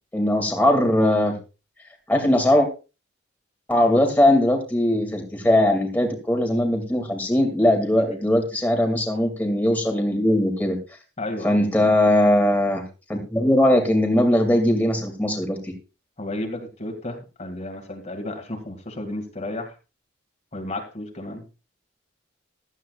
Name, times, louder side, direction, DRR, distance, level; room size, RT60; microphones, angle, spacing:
voice 1, 0.1-1.4 2.1-2.7 3.7-10.8 11.4-12.8 13.1-15.7, left 1 dB, 10° left, 2 dB, 2.4 m, -20 dB
voice 2, 11.2-11.6 16.2-19.7 20.5-21.4, left 1 dB, 35° left, 3 dB, 2.2 m, -32 dB
15.5 x 12.5 x 2.4 m, 0.31 s
head